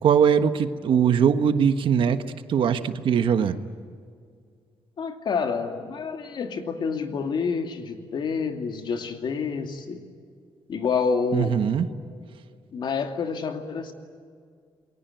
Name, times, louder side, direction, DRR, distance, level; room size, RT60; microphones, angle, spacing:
voice 1, 0.0-2.2 2.5-3.6 11.3-11.9, right 8 dB, 65° right, 9 dB, 1.4 m, -21 dB
voice 2, 5.0-10.0 10.7-11.6 12.7-13.9, left 5 dB, 55° left, 5 dB, 2.6 m, -28 dB
28.5 x 22.5 x 9.3 m, 2.2 s
wide cardioid pair, 155°, 9 cm